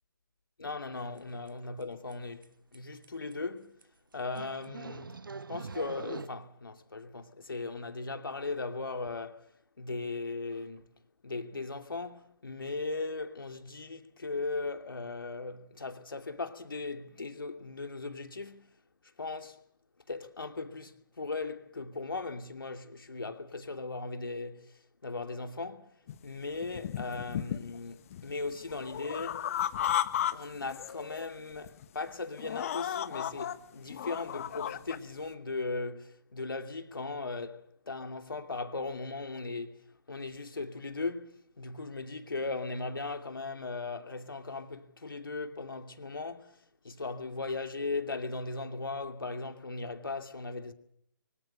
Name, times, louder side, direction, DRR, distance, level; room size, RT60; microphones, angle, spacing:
voice 1, 0.6-3.8 4.1-5.2 5.5-10.9 11.2-18.7 19.2-19.6 20.1-25.9 26.2-29.5 30.2-39.8 40.1-50.7, left 3 dB, 70° left, 2.7 m, -38 dB
sound 1, 1.2-1.3 1.5-1.8 2.1-2.2 2.4-2.5 2.7-2.8 3.0-3.3 3.8-3.9 4.4-6.3, right 4 dB, 65° right, 1.0 m, -43 dB
sound 2, 26.1-26.2 26.6-27.8 28.1-30.3 30.6-31.2 31.7-31.8 32.4-33.5 33.9-35.0, left 10 dB, 40° left, 1.5 m, -34 dB
24.5 x 19.0 x 6.8 m
figure-of-eight pair, 135°, 12 cm